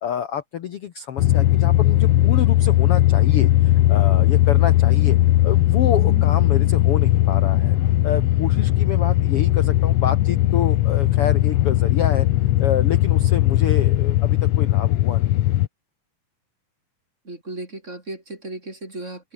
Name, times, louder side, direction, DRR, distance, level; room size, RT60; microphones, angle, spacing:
voice 1, 0.0-5.2 5.4-7.8 8.0-12.3 12.6-15.5, left 9 dB, 55° left, 1.8 m, -28 dB
sound 1, 1.2-15.7, left 15 dB, 80° left, 1.4 m, -18 dB
voice 2, 5.9-6.3 17.2-19.3, right 2 dB, 20° right, 3.8 m, -35 dB
omnidirectional pair, 3.8 m